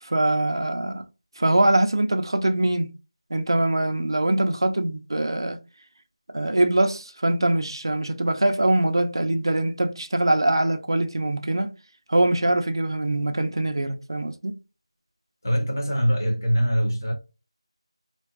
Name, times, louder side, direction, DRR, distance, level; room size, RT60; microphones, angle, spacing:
voice 1, 0.0-1.0 1.4-2.9 3.3-5.6 6.3-11.7 12.1-14.5, right 1 dB, 50° right, 0.4 m, -23 dB
voice 2, 15.4-17.1, equal, 35° left, 0.6 m, -23 dB
2.5 x 2.3 x 2.2 m
figure-of-eight pair, 180°, 3 cm